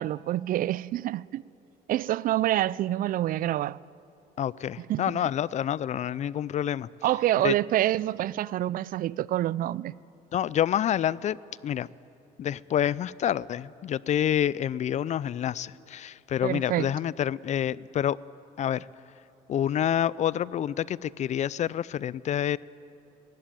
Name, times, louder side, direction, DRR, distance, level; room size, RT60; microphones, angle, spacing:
voice 1, 0.0-1.4 1.9-3.8 4.8-5.2 7.0-9.9 16.4-16.9, right 13 dB, 55° right, 0.4 m, -27 dB
voice 2, 4.4-6.9 7.4-7.5 10.3-11.4 11.6-11.9 12.4-18.2 18.6-18.9 19.5-22.6, left 10 dB, 45° left, 0.4 m, -28 dB
20.0 x 16.5 x 9.1 m
cardioid pair, 110°, 17 cm